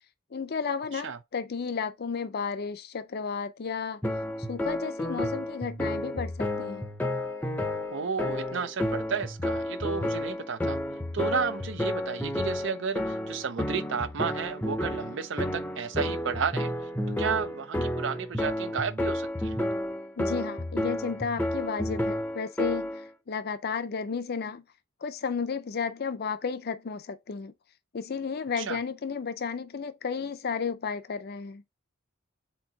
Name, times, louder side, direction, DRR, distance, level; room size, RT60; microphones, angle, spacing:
voice 1, 0.3-4.0 4.5-6.9 20.2-23.0 23.3-24.6 25.0-27.5 27.9-31.6, left 5 dB, 50° left, 0.5 m, -33 dB
sound 1, 4.0-23.1, left 1 dB, 10° left, 0.6 m, -31 dB
voice 2, 7.9-10.8 11.1-16.7 17.2-19.6 28.6-28.8, right 6 dB, 60° right, 0.5 m, -32 dB
4.4 x 3.8 x 2.7 m
head